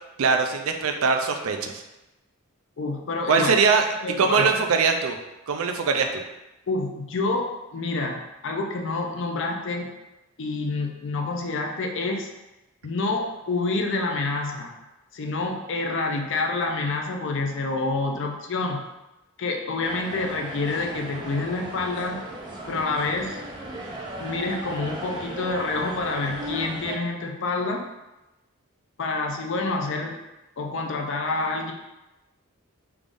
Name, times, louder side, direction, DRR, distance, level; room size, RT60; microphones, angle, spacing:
voice 1, 0.2-1.8 3.3-3.8 4.2-5.2 5.5-6.1, right 5 dB, 70° right, 5 dB, 0.4 m, -21 dB
voice 2, 2.8-3.5 4.0-4.6 6.7-9.9 10.4-12.3 12.8-14.7 15.1-18.8 19.4-22.2 22.7-23.4 24.2-27.9 29.0-30.2 30.6-31.7, left 3 dB, 55° left, 2 dB, 0.5 m, -28 dB
sound 1, 19.8-27.0, right 1 dB, 20° right, 0.5 m, -36 dB
3.5 x 3.4 x 2.5 m, 1.0 s
head